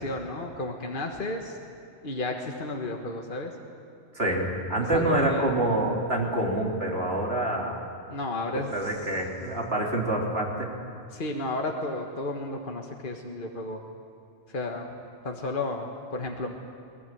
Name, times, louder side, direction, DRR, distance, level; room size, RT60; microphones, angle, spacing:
voice 1, 0.0-1.6 2.0-3.5 4.9-5.5 8.1-8.7 11.1-13.8 14.5-14.9 15.2-16.5, left 2 dB, 45° left, 2 dB, 1.8 m, -32 dB
voice 2, 4.1-7.8 8.7-10.7, right 1 dB, 55° right, -2 dB, 3.9 m, -26 dB
23.0 x 19.5 x 9.2 m, 2.7 s
omnidirectional pair, 1.3 m